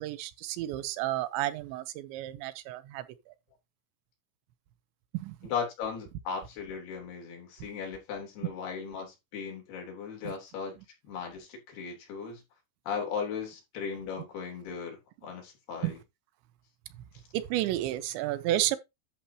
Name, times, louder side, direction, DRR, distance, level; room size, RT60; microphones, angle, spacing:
voice 1, 0.0-3.0 5.1-5.4 10.2-10.3 15.8-15.9 17.3-18.8, right 14 dB, 90° right, 3.1 m, -31 dB
voice 2, 5.4-10.7 11.0-12.4 12.9-16.0, left 6 dB, 65° left, 5.0 m, -37 dB
11.5 x 7.0 x 2.9 m
omnidirectional pair, 5.1 m